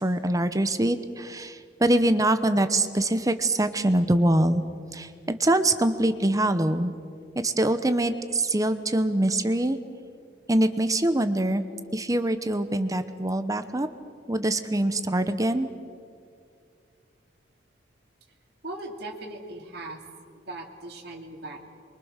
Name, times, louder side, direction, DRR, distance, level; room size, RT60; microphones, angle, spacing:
voice 1, 0.0-4.6 4.9-6.9 7.4-9.8 10.5-11.6 11.9-13.9 14.3-15.7, right 1 dB, 20° right, 10 dB, 0.9 m, -24 dB
voice 2, 18.6-20.0 20.3-21.6, right 2 dB, 60° right, 0 dB, 2.8 m, -39 dB
25.5 x 23.5 x 6.6 m, 2.3 s
head